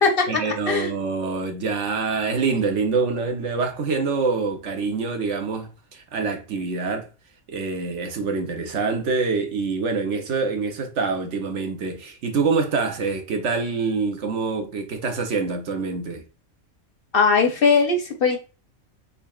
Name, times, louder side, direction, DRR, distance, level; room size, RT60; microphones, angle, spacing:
voice 1, 0.3-7.1 7.5-16.2, right 4 dB, 65° right, 1.1 m, -25 dB
voice 2, 17.1-18.4, left 4 dB, 55° left, 0.8 m, -19 dB
3.9 x 3.5 x 2.2 m
omnidirectional pair, 1.3 m